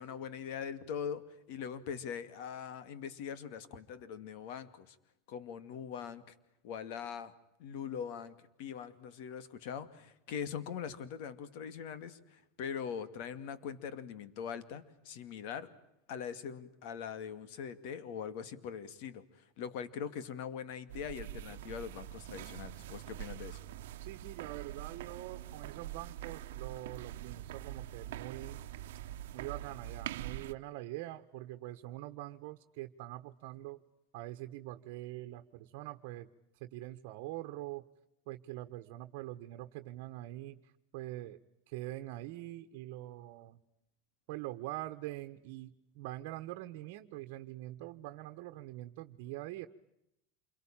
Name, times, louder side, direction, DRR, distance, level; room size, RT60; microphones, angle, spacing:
voice 1, 0.0-5.0 5.3-6.3 6.6-7.3 7.6-15.7 16.1-23.6, left 7 dB, 60° left, 13 dB, 2.5 m, -42 dB
sound 1, 20.9-30.5, right 13 dB, 80° right, 1.0 m, -44 dB
voice 2, 24.0-28.6 29.3-33.8 34.1-36.3 36.6-37.8 38.3-40.6 40.9-41.4 41.7-43.6 44.3-49.7, right 16 dB, 60° right, 7 dB, 1.3 m, -44 dB
28.0 x 23.0 x 9.0 m, 0.83 s
supercardioid pair, 150°, 0 cm